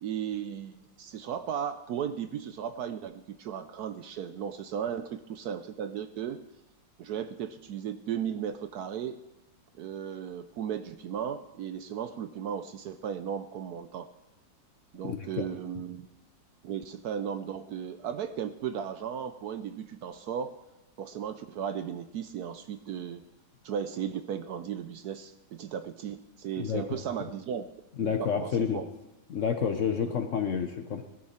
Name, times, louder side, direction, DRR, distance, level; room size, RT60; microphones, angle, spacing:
voice 1, 0.0-6.4 7.0-9.2 9.8-14.1 14.9-16.1 16.6-20.6 21.0-23.2 23.6-27.7 28.0-28.9 30.1-30.2, right 8 dB, 70° right, 10 dB, 1.0 m, -36 dB
voice 2, 15.0-15.5 26.6-27.0 28.0-28.8 29.3-31.1, left 7 dB, 55° left, 7 dB, 0.9 m, -29 dB
17.5 x 11.0 x 4.3 m, 0.99 s
omnidirectional pair, 2.0 m